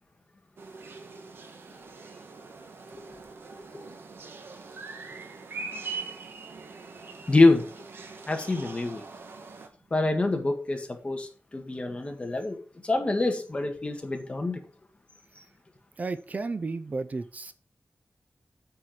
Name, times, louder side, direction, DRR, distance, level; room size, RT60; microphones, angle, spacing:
sound 1, 0.6-9.7, right 4 dB, 80° right, 1.5 m, -42 dB
voice 1, 7.3-7.7 8.3-9.0 9.9-12.6 12.8-14.6, left 2 dB, 30° left, 4 dB, 1.7 m, -25 dB
voice 2, 16.0-17.5, right 3 dB, 40° right, 12 dB, 0.6 m, -33 dB
8.5 x 4.5 x 6.5 m, 0.39 s
wide cardioid pair, 120°, 4 cm